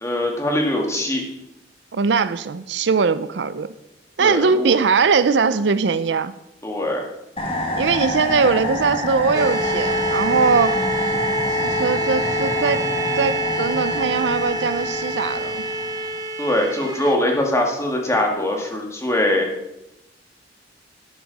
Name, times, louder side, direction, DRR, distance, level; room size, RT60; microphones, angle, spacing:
voice 1, 0.0-1.2 4.2-4.7 6.6-7.0 16.4-19.5, left 1 dB, 15° left, 0 dB, 2.0 m, -22 dB
voice 2, 1.9-3.7 4.2-6.3 7.8-10.8 11.6-12.8 13.2-15.6, right 5 dB, 70° right, 14 dB, 0.5 m, -20 dB
sound 1, 7.4-16.2, left 1 dB, 35° left, 1.8 m, -27 dB
sound 2, 9.3-17.1, right 1 dB, 20° right, 1.2 m, -26 dB
12.0 x 9.5 x 4.1 m, 0.90 s
head